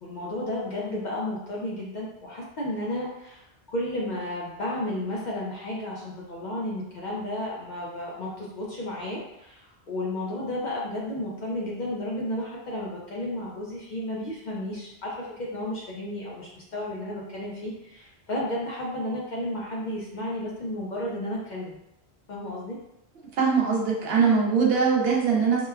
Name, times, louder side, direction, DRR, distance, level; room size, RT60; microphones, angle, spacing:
voice 1, 0.0-3.4 3.7-21.8 22.3-22.8, left 1 dB, 55° left, -4 dB, 0.5 m, -32 dB
voice 2, 23.2-25.7, right 5 dB, 70° right, -2 dB, 0.8 m, -22 dB
3.0 x 2.2 x 2.2 m, 0.82 s
omnidirectional pair, 1.1 m